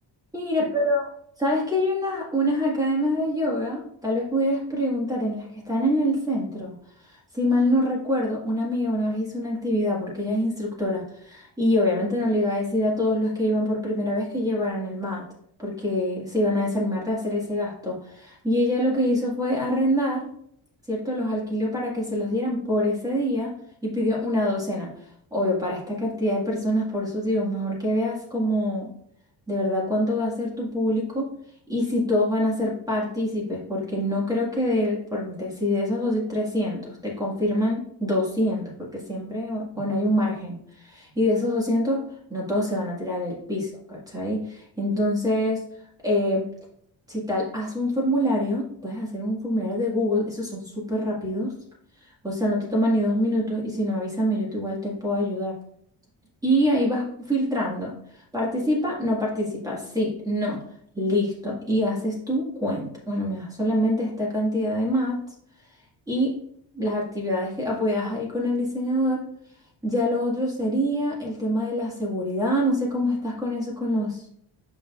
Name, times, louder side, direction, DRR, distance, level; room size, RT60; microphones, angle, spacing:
voice 1, 0.3-1.0 1.4-6.7 7.3-15.2 15.6-20.3 20.9-23.5 23.8-24.9 25.3-28.9 29.5-31.3 31.7-42.0 42.3-45.6 46.0-46.5 47.1-51.5 52.2-55.5 56.4-58.0 58.3-60.6 61.0-65.2 66.1-66.3 66.7-69.3 69.8-74.2, equal, 10° right, -4 dB, 1.9 m, -25 dB
8.4 x 5.9 x 2.5 m, 0.68 s
wide cardioid pair, 175°, 46 cm